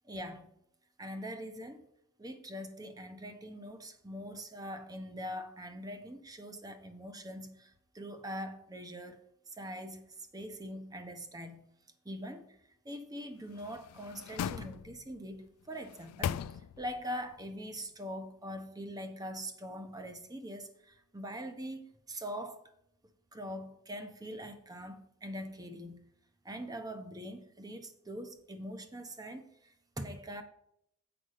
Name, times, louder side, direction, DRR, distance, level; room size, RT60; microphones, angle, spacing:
voice 1, 0.0-0.5 1.0-1.9 2.2-11.6 12.0-22.6 23.3-26.0 26.4-30.4, equal, 15° right, 0.9 m, -43 dB
sound 1, 13.5-15.2 15.7-17.0 17.4-17.5, left 9 dB, 85° left, 0.3 m, -39 dB
7.9 x 5.2 x 6.5 m
head